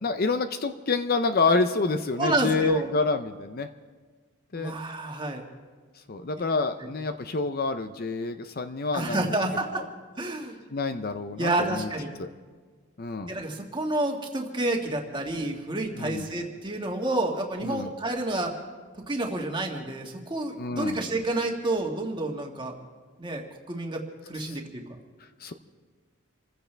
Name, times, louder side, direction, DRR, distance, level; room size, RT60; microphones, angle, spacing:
voice 1, 0.0-3.7 4.5-4.8 6.1-9.3 10.7-11.9 12.2-12.3 13.0-13.3 15.9-16.3 17.6-17.9 20.6-21.0 24.5-24.6 25.4-25.5, left 3 dB, 45° left, 8 dB, 0.6 m, -27 dB
voice 2, 2.2-2.9 4.5-5.4 6.8-6.9 8.9-9.8 10.2-10.6 11.4-12.1 13.3-18.5 19.1-22.7 23.2-24.8, right 2 dB, 20° right, 1 dB, 1.8 m, -29 dB
28.0 x 15.0 x 3.4 m, 1.5 s
head